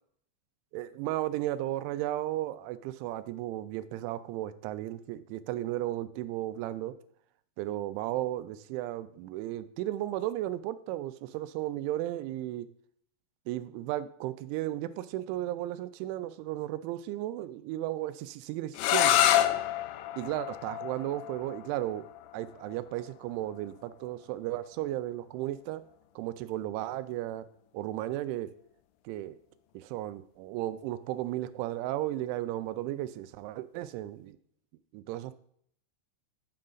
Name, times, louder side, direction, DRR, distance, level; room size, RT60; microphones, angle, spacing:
voice 1, 0.7-6.9 7.6-12.7 13.5-19.2 20.2-22.1 22.3-25.8 26.2-27.5 27.7-28.5 29.1-29.4 29.7-34.4 34.9-35.3, right 14 dB, 85° right, 13 dB, 2.9 m, -34 dB
sound 1, 18.7-24.5, left 12 dB, 85° left, 3.0 m, -29 dB
8.8 x 6.4 x 3.9 m, 0.64 s
omnidirectional pair, 5.6 m